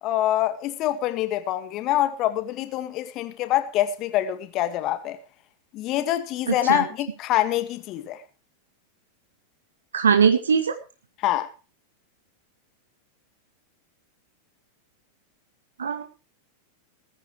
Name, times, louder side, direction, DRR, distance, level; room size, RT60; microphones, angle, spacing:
voice 1, 0.0-5.2 5.7-8.2 11.2-11.5, left 13 dB, 35° left, 1.9 m, -25 dB
voice 2, 6.5-6.8 9.9-10.7 15.8-16.0, right 6 dB, 70° right, 2.0 m, -20 dB
20.0 x 15.0 x 3.3 m
figure-of-eight pair, 90°, 0 cm